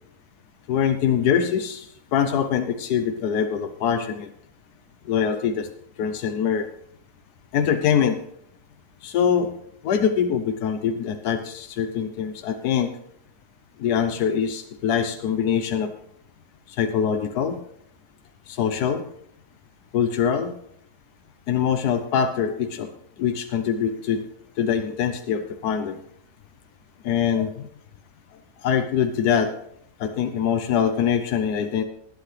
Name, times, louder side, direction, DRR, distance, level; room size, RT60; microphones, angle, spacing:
voice 1, 0.7-4.3 5.1-5.7 6.0-6.7 7.5-8.2 9.0-9.5 9.8-12.9 13.8-15.9 16.7-17.6 18.5-19.0 19.9-20.5 21.5-22.9 23.2-24.2 24.6-26.0 27.0-27.7 28.6-29.5 30.0-31.8, left 8 dB, 80° left, 7 dB, 1.3 m, -23 dB
19.5 x 8.7 x 3.3 m, 0.72 s
omnidirectional pair, 1.7 m